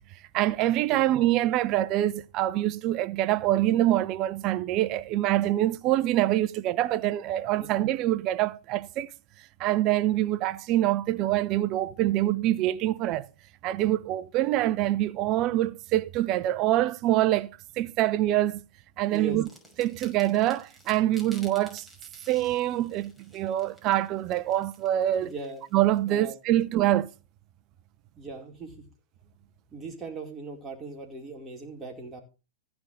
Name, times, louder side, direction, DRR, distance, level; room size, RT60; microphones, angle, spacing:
voice 1, 0.3-9.1 9.6-13.3 13.6-17.5 17.8-18.6 19.0-19.5 19.8-21.8 22.3-25.3 25.7-27.1, right 14 dB, 40° right, 0.8 m, -25 dB
sound 1, 19.1-26.0, equal, ahead, 5.7 m, -53 dB
voice 2, 25.2-25.6 26.1-26.3 28.2-28.7 29.7-32.2, right 4 dB, 20° right, 4.5 m, -39 dB
15.0 x 6.1 x 6.6 m
hypercardioid pair, 110°, 0 cm